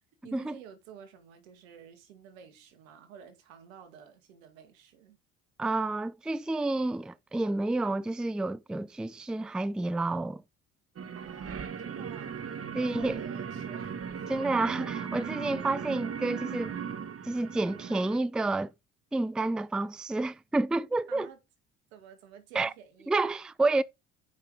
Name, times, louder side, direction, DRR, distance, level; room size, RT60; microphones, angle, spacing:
voice 1, 0.2-5.2 11.1-14.3 21.1-21.4 21.9-23.2, right 8 dB, 85° right, 2.1 m, -51 dB
voice 2, 5.6-10.4 12.7-13.2 14.3-16.7 17.2-18.7 19.1-21.3 22.5-22.7 23.1-23.8, right 2 dB, ahead, 0.4 m, -29 dB
sound 1, 11.0-18.2, right 7 dB, 35° right, 1.3 m, -37 dB
8.0 x 5.7 x 4.9 m
hypercardioid pair, 65°, 39 cm